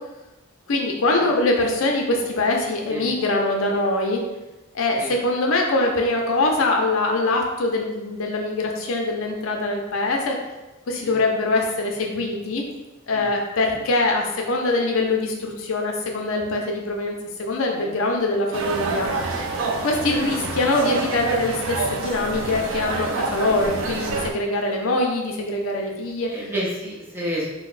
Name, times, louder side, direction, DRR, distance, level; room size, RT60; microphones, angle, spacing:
voice 1, 0.7-4.2 4.7-10.4 10.9-12.6 13.1-19.1 19.8-26.3, left 2 dB, 80° left, 1 dB, 0.5 m, -23 dB
sound 1, 18.5-24.3, right 3 dB, 70° right, 0.4 m, -27 dB
voice 2, 26.3-27.4, equal, 10° right, -6 dB, 0.6 m, -30 dB
3.9 x 2.0 x 2.4 m, 1.0 s
head